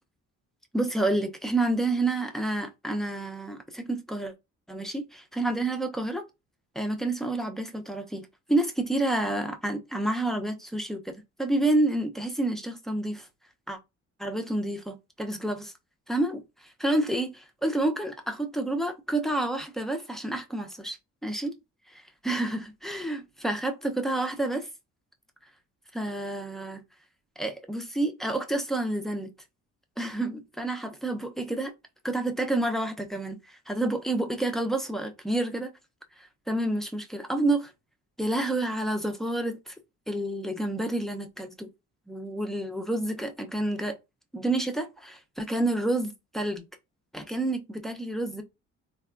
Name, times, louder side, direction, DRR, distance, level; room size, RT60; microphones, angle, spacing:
voice 1, 0.7-4.3 4.7-6.2 6.8-8.2 8.5-11.1 11.4-13.3 13.7-13.8 14.2-15.7 16.1-21.0 21.2-21.5 21.9-24.7 25.9-26.8 27.4-29.3 30.0-31.7 32.0-35.7 36.2-37.7 38.2-39.7 40.1-41.7 42.1-44.0 44.3-46.7 47.1-48.4, right 2 dB, ahead, 0.5 m, -29 dB
3.4 x 2.3 x 2.3 m
cardioid pair, 90°, 30 cm